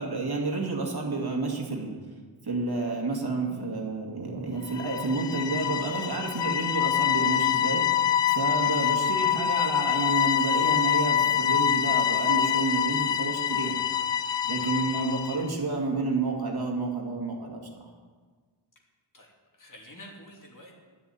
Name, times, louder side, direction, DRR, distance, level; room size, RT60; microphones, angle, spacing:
voice 1, 0.0-2.0 2.4-13.8 14.4-17.9, right 3 dB, 50° right, 0 dB, 2.2 m, -30 dB
sound 1, 4.7-15.5, left 10 dB, 65° left, 0.6 m, -25 dB
voice 2, 19.1-20.7, left 1 dB, 40° left, -1 dB, 2.9 m, -49 dB
10.5 x 6.9 x 9.1 m, 1.5 s
wide cardioid pair, 60°, 48 cm